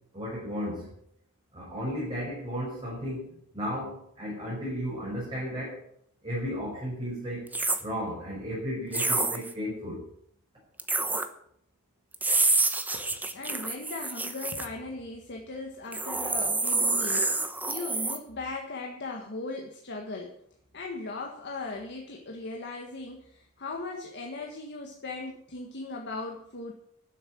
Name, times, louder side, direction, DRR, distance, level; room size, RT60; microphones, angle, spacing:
voice 1, 0.1-1.0 1.5-5.8 6.2-7.4 7.8-10.0, equal, 25° right, -5 dB, 5.3 m, -34 dB
sound 1, 7.5-7.8 8.9-9.5 10.8-11.3 12.1-14.7 15.9-18.2, right 3 dB, 10° right, 0.9 m, -27 dB
voice 2, 12.9-20.3 20.7-26.7, left 3 dB, 55° left, 0 dB, 1.6 m, -38 dB
12.0 x 7.8 x 8.7 m, 0.70 s
head